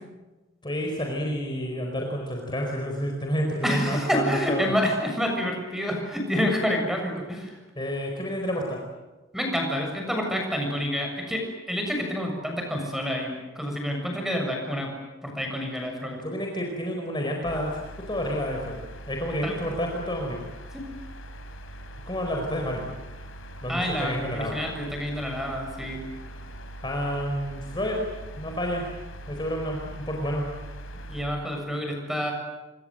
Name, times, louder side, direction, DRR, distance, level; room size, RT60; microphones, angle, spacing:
voice 1, 0.6-4.7 7.8-8.9 16.2-17.8 18.1-18.8 19.1-20.4 22.1-22.8 23.6-24.5 26.8-28.0 28.4-28.8 29.3-30.5, equal, 20° left, 1 dB, 4.5 m, -29 dB
voice 2, 3.6-7.6 9.3-14.9 15.2-16.2 19.4-19.5 20.7-20.8 23.7-26.0 31.1-32.3, equal, ahead, 2 dB, 7.0 m, -28 dB
sound 1, 17.5-31.2, right 1 dB, 85° left, 3.5 m, -42 dB
27.0 x 25.0 x 7.9 m, 1.2 s
head